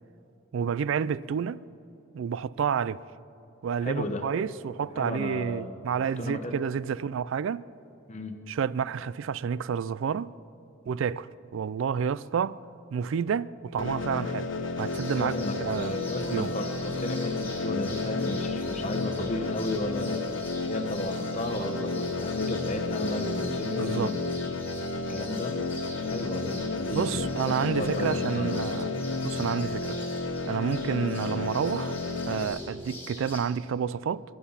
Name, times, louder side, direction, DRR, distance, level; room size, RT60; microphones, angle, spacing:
voice 1, 0.5-1.6 2.1-3.0 3.6-7.6 8.5-10.3 10.9-12.6 12.9-14.5 14.8-15.3 15.6-16.0 16.3-16.5 23.7-24.1 26.9-28.9 29.2-30.0 30.4-32.0 32.3-34.2, right 7 dB, 70° right, 0.3 m, -29 dB
voice 2, 3.8-4.3 4.9-5.7 6.2-6.5 8.1-8.4 15.2-20.3 20.6-24.2 25.1-25.6 26.0-28.6, left 1 dB, 35° left, 1.2 m, -34 dB
sound 1, 13.8-32.4, left 3 dB, 65° left, 1.2 m, -32 dB
sound 2, 14.8-33.4, left 2 dB, 10° left, 3.5 m, -45 dB
22.5 x 10.5 x 5.7 m
head